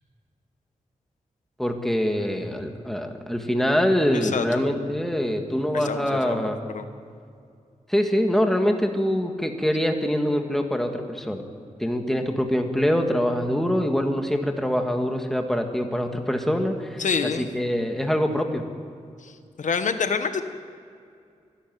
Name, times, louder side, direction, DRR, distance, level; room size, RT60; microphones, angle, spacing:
voice 1, 1.6-6.6 7.9-11.4 11.8-17.0 17.4-18.6, equal, 5° left, 4 dB, 1.6 m, -24 dB
voice 2, 5.7-6.8 17.0-17.5 19.2-19.3 19.6-20.4, left 6 dB, 75° left, 9 dB, 1.1 m, -27 dB
25.5 x 11.5 x 9.3 m, 2.4 s
wide cardioid pair, 160°, 13 cm